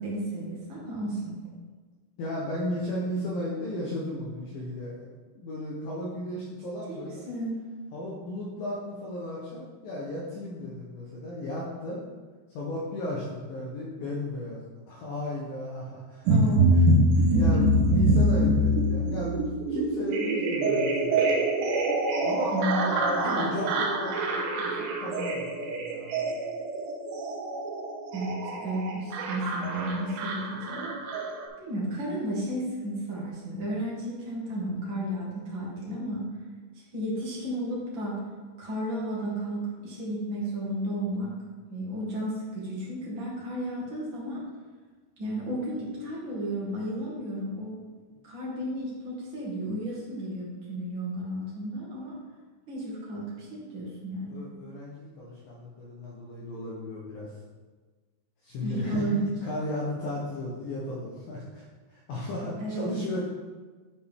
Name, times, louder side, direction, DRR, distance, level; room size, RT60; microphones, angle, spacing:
voice 1, 0.0-1.3 6.9-7.6 16.3-16.8 17.3-17.7 22.5-23.5 28.1-31.0 31.6-36.3 36.7-38.2 38.6-41.3 41.7-44.4 45.2-47.8 48.2-52.2 52.7-54.4 58.6-59.2 62.6-62.9, right 1 dB, 50° right, -6 dB, 1.4 m, -33 dB
voice 2, 2.2-5.1 5.3-7.2 7.9-12.0 12.5-14.6 14.9-16.9 17.4-19.4 19.7-21.2 22.2-26.3 54.3-57.3 58.4-59.0 59.4-63.2, left 1 dB, 70° left, -5 dB, 2.3 m, -35 dB
sound 1, 16.3-31.5, right 1 dB, 75° right, 3.1 m, -25 dB
10.5 x 5.2 x 3.6 m, 1.4 s
omnidirectional pair, 5.3 m